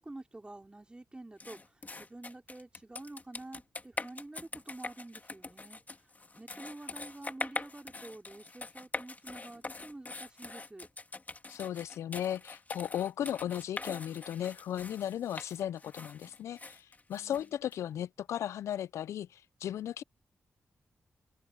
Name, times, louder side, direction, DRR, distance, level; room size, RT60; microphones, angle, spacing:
voice 1, 0.0-5.8 6.4-10.9 17.1-17.6, right 2 dB, 20° right, 3.7 m, -48 dB
sound 1, 1.4-17.8, left 3 dB, 35° left, 2.5 m, -43 dB
voice 2, 11.5-20.0, left 10 dB, 90° left, 0.4 m, -36 dB
open air
cardioid pair, 60°, 5 cm